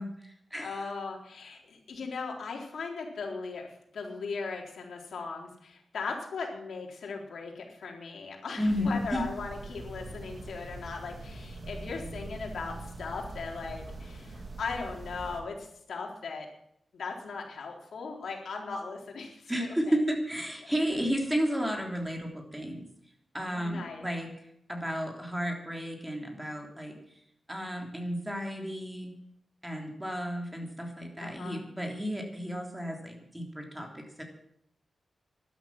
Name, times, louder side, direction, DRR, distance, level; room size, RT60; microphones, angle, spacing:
voice 1, 0.0-0.8 8.6-9.2 19.5-22.8 23.3-24.3 24.7-27.0 27.5-29.1 29.6-34.2, equal, 5° right, 2 dB, 3.3 m, -32 dB
voice 2, 0.6-3.7 3.9-16.5 16.9-19.9 20.9-21.0 23.5-24.0 31.2-31.6, left 4 dB, 80° left, 0 dB, 3.9 m, -38 dB
sound 1, 8.7-15.4, right 2 dB, 40° right, 2.9 m, -43 dB
13.0 x 12.0 x 7.3 m, 0.73 s
wide cardioid pair, 120°, 0 cm